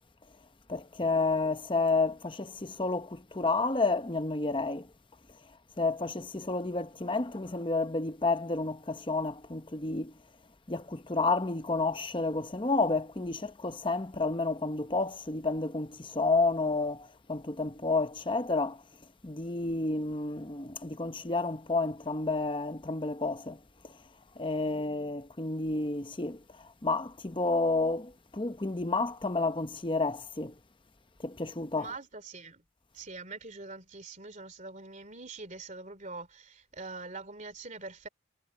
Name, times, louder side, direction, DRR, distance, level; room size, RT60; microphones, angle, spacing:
voice 1, 0.7-4.9 5.8-10.1 10.7-18.8 19.2-23.9 24.4-30.5 31.2-31.9, left 3 dB, 25° left, 0.8 m, -30 dB
voice 2, 24.6-25.0 31.8-32.6 32.9-38.1, right 3 dB, 35° right, 2.9 m, -44 dB
head